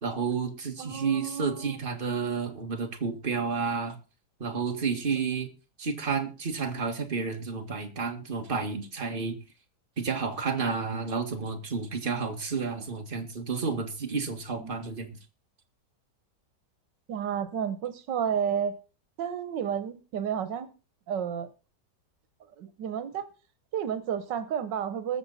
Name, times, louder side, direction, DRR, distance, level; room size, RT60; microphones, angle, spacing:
voice 1, 0.0-4.0 4.4-5.5 5.8-9.4 10.0-15.2, right 5 dB, 30° right, 4 dB, 2.0 m, -31 dB
voice 2, 0.8-1.8 14.6-14.9 17.1-18.8 19.2-20.7 21.1-21.5 22.6-23.3 23.7-25.2, right 8 dB, 85° right, 12 dB, 1.7 m, -31 dB
21.0 x 7.0 x 4.1 m, 0.33 s
omnidirectional pair, 1.9 m